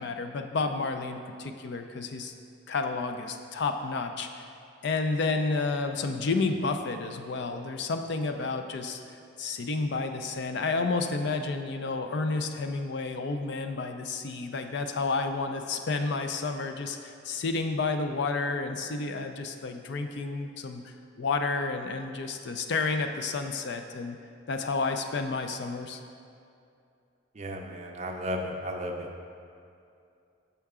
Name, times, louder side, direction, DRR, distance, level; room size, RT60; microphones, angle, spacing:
voice 1, 0.0-2.3 2.7-4.5 4.8-9.0 9.4-24.2 24.5-26.0, left 3 dB, 55° left, 6 dB, 0.4 m, -31 dB
voice 2, 27.3-29.1, equal, 30° right, 2 dB, 0.4 m, -34 dB
5.7 x 5.5 x 3.6 m, 2.5 s
head